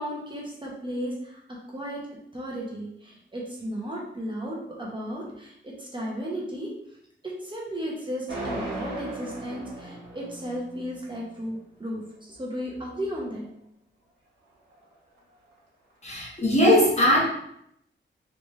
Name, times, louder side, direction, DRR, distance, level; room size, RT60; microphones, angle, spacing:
voice 1, 0.0-1.4 1.7-2.0 2.3-6.7 7.2-13.4, equal, 25° right, -4 dB, 0.9 m, -34 dB
sound 1, 8.3-11.2, right 2 dB, 70° right, 1.3 m, -36 dB
voice 2, 16.0-17.2, left 1 dB, 35° left, -5 dB, 1.2 m, -20 dB
3.2 x 3.1 x 3.2 m, 0.75 s
wide cardioid pair, 95°, 20 cm